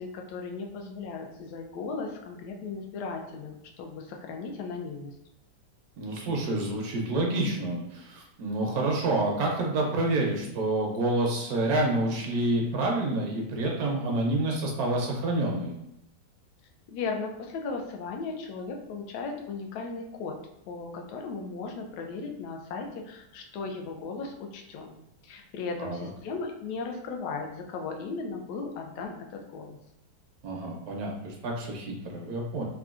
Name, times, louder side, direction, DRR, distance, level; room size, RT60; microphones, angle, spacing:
voice 1, 0.0-5.1 16.9-20.4 20.7-25.0 25.2-29.8, left 4 dB, 75° left, 2 dB, 1.1 m, -36 dB
voice 2, 6.0-15.7 25.8-26.1 30.4-32.6, right 2 dB, 70° right, 0 dB, 0.9 m, -28 dB
3.7 x 2.2 x 2.4 m, 0.82 s
omnidirectional pair, 1.9 m